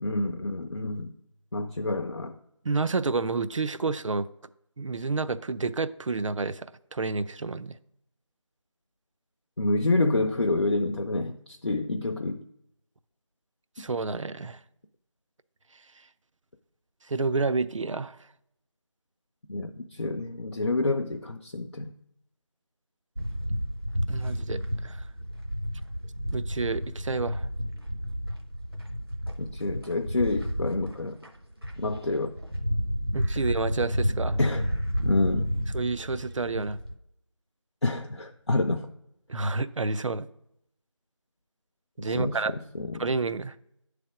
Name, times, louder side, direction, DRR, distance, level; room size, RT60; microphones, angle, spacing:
voice 1, 0.0-1.1 1.5-2.4 9.6-12.4 13.8-13.9 19.5-21.9 29.4-31.2 31.8-32.3 34.4-34.7 35.0-35.5 37.8-38.9 42.0-42.4 42.7-42.9, left 2 dB, 60° left, 3 dB, 0.4 m, -28 dB
voice 2, 2.6-4.3 4.8-7.8 13.8-14.6 17.1-18.2 24.1-25.0 26.3-27.5 33.1-34.4 35.7-36.8 39.3-40.3 42.0-42.5 43.0-43.6, right 3 dB, 75° right, 13 dB, 0.4 m, -29 dB
sound 1, 23.2-36.9, equal, 50° right, 0.7 m, -31 dB
8.8 x 3.3 x 4.8 m, 0.78 s
figure-of-eight pair, 175°, 16 cm